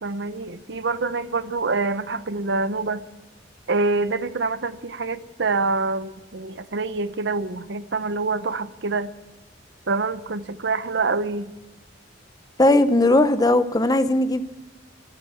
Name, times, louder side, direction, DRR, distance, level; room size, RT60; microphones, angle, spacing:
voice 1, 0.0-3.0 3.7-9.1 9.9-11.5, right 3 dB, 70° right, 13 dB, 0.8 m, -26 dB
voice 2, 12.6-14.4, left 2 dB, 20° left, 12 dB, 0.8 m, -18 dB
14.0 x 12.0 x 7.1 m, 1.1 s
head